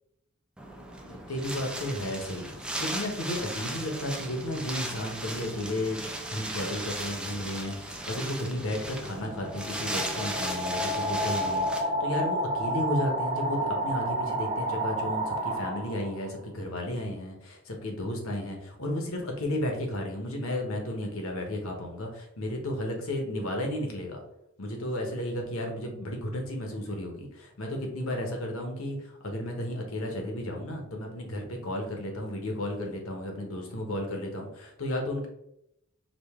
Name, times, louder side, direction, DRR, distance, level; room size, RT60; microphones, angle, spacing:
Wind, 0.6-11.8, right 1 dB, 5° right, 0.4 m, -37 dB
voice 1, 1.1-24.2 24.6-35.3, left 1 dB, 65° left, 2 dB, 1.0 m, -33 dB
sound 1, 8.6-16.3, right 1 dB, 25° right, 1.0 m, -31 dB
5.1 x 2.5 x 3.6 m, 0.80 s
head